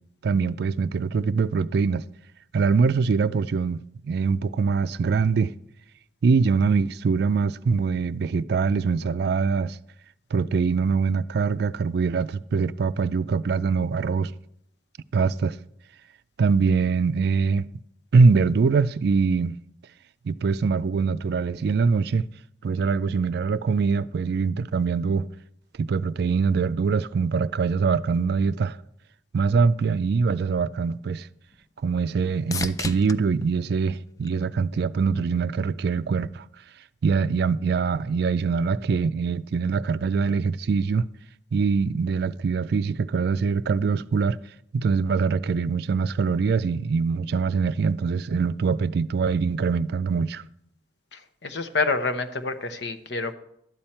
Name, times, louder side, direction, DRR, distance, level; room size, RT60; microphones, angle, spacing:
voice 1, 0.2-2.0 2.5-5.5 6.2-9.8 10.3-14.3 15.1-15.6 16.4-17.7 18.1-19.6 20.2-22.3 22.6-25.3 25.8-28.8 29.3-31.3 31.8-36.4 37.0-41.1 41.5-44.4 44.7-50.4, right 5 dB, 60° right, 0.4 m, -23 dB
sound 1, 30.8-35.0 35.5-36.1 43.9-44.0, left 4 dB, 20° left, 0.4 m, -38 dB
voice 2, 51.1-53.3, left 3 dB, 70° left, 0.9 m, -28 dB
12.0 x 8.8 x 4.4 m
head